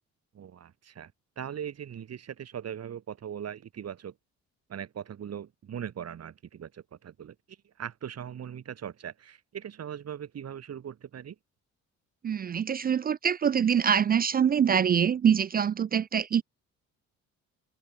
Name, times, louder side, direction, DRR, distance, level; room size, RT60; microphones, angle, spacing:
voice 1, 0.3-1.1 1.4-4.1 4.7-7.4 7.8-11.4, right 9 dB, 55° right, 3.4 m, -40 dB
voice 2, 12.2-16.4, right 8 dB, 30° right, 0.4 m, -24 dB
cardioid pair, 90°, 30 cm